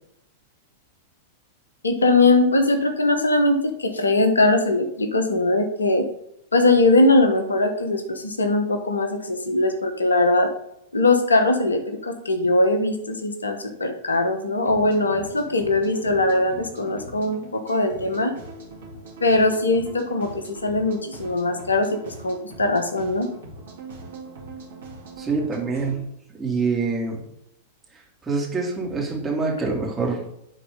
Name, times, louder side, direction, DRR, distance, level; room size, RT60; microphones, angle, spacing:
voice 1, 1.8-6.1 6.5-10.5 10.9-18.3 19.2-23.3, left 2 dB, 80° left, 6 dB, 1.1 m, -21 dB
sound 1, 14.6-26.0, right 1 dB, 65° right, 2.5 m, -41 dB
voice 2, 25.2-26.0 26.4-27.2 28.2-30.2, right 4 dB, 15° right, -2 dB, 2.5 m, -25 dB
10.5 x 4.1 x 3.7 m, 0.77 s
figure-of-eight pair, 95°, 0 cm